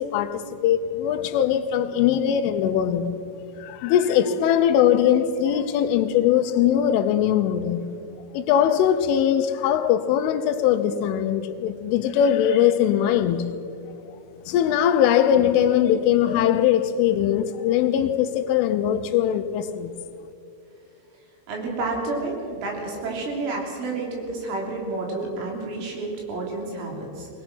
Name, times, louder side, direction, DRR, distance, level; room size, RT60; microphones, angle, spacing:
voice 1, 0.0-3.3 3.6-7.9 8.3-13.6 14.5-19.9, left 10 dB, 80° left, 3.2 m, -21 dB
voice 2, 21.5-27.3, right 3 dB, 70° right, 5.7 m, -30 dB
21.5 x 20.0 x 6.2 m
omnidirectional pair, 5.8 m